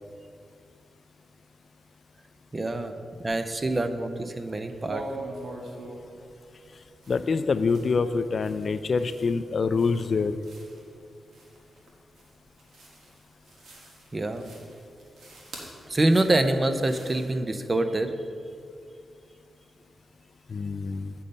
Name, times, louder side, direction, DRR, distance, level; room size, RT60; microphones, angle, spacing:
voice 1, 2.5-3.0 3.2-5.0 14.1-14.5 15.9-18.1, right 2 dB, 30° right, 9 dB, 0.6 m, -25 dB
sound 1, 3.6-4.2 4.5-17.4, right 1 dB, 85° right, 1.5 m, -45 dB
voice 2, 7.1-10.4 20.5-21.1, left 4 dB, 55° left, 12 dB, 0.3 m, -26 dB
8.5 x 5.4 x 5.2 m, 2.3 s
cardioid pair, 70°, 0 cm